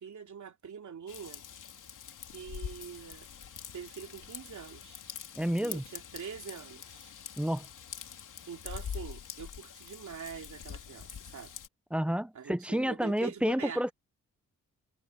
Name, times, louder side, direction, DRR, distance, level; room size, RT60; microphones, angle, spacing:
voice 1, 0.0-1.4 2.3-3.3 3.7-5.0 5.6-7.1 8.5-11.5 12.3-13.9, right 7 dB, 70° right, 3.0 m, -44 dB
Raindrop / Vehicle horn car horn honking / Trickle dribble, 1.1-11.7, left 8 dB, 85° left, 3.1 m, -45 dB
voice 2, 5.3-5.8 7.4-7.7 11.9-13.9, equal, 5° right, 0.6 m, -30 dB
cardioid pair, 95°, 30 cm